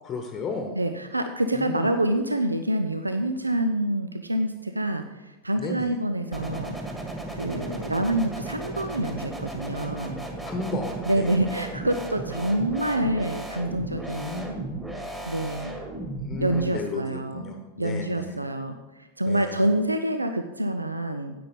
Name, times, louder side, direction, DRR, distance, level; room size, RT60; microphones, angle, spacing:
voice 1, 0.0-0.7 1.6-1.9 5.6-6.0 10.4-11.3 14.2-14.5 16.2-18.5 19.3-19.7, left 3 dB, 25° left, 5 dB, 1.1 m, -33 dB
voice 2, 0.8-6.8 7.3-10.2 11.1-14.6 15.3-15.8 16.4-21.3, right 1 dB, 85° right, 8 dB, 0.5 m, -27 dB
sound 1, 6.3-16.6, right 2 dB, 10° right, 2.0 m, -35 dB
9.8 x 8.6 x 5.1 m, 1.1 s
figure-of-eight pair, 90°, 0 cm